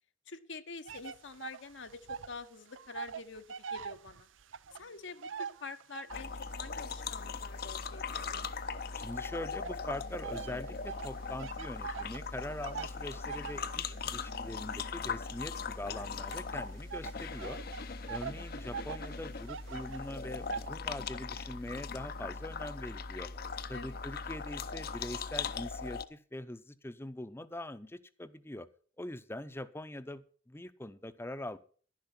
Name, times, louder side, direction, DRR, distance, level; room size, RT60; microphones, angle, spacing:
voice 1, 0.3-4.3 4.7-8.0 8.3-8.5 23.7-24.0, left 4 dB, 70° left, 7 dB, 1.1 m, -47 dB
sound 1, 0.9-2.4 2.7-6.4 6.9-9.0 9.6-20.7, right 6 dB, 85° right, 0.6 m, -44 dB
sound 2, 6.1-26.0, left 5 dB, 50° left, 0.7 m, -40 dB
voice 2, 9.0-17.6 18.1-23.3 23.7-28.7 29.0-31.6, left 1 dB, 10° left, 13 dB, 0.7 m, -43 dB
11.5 x 10.5 x 6.0 m, 0.42 s
head